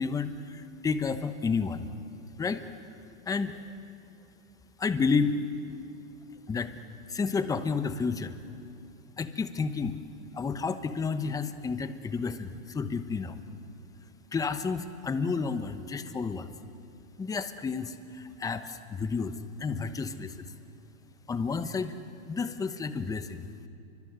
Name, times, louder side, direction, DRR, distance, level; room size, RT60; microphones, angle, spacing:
voice 1, 0.0-1.9 2.4-2.6 3.3-3.6 4.8-5.4 6.5-6.7 7.1-8.4 9.2-10.0 10.3-13.3 14.3-16.5 17.2-20.5 21.3-21.9 22.3-23.4, left 5 dB, 10° left, 10 dB, 0.9 m, -31 dB
30.0 x 24.0 x 8.1 m, 2.5 s
supercardioid pair, 150°, 40 cm